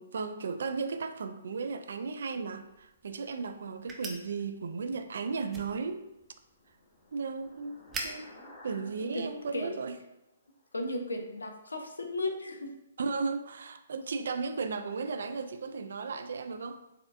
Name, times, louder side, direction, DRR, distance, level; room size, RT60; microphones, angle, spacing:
voice 1, 0.0-6.1 7.1-8.3 8.6-10.0 13.0-16.8, right 4 dB, 65° right, 9 dB, 0.3 m, -35 dB
sound 1, 2.5-9.7, right 3 dB, 15° right, 0.6 m, -47 dB
sound 2, 6.0-10.7, left 1 dB, 55° left, 1.3 m, -56 dB
voice 2, 8.7-9.2 9.5-9.8 10.7-12.7, left 2 dB, 80° left, 4 dB, 0.6 m, -36 dB
4.2 x 3.4 x 2.5 m, 0.92 s
figure-of-eight pair, 130°, 0 cm